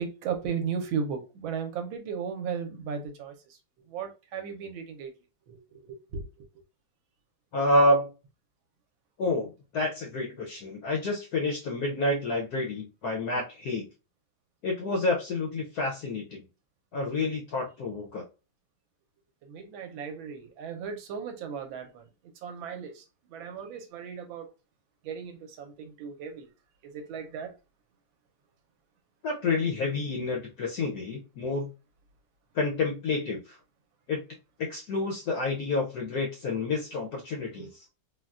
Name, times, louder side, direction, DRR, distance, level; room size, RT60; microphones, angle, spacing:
voice 1, 0.0-3.3 3.9-5.1 5.5-6.4 19.5-22.1 22.4-23.0 23.3-24.5 25.0-26.5 26.8-27.5 37.6-37.7, right 6 dB, 75° right, 1.4 m, -36 dB
voice 2, 7.5-8.1 9.2-13.8 14.6-16.4 16.9-18.2 29.2-31.7 32.5-33.6 34.1-34.2 34.7-37.7, left 2 dB, 70° left, 0.9 m, -28 dB
3.8 x 2.2 x 2.3 m
omnidirectional pair, 2.3 m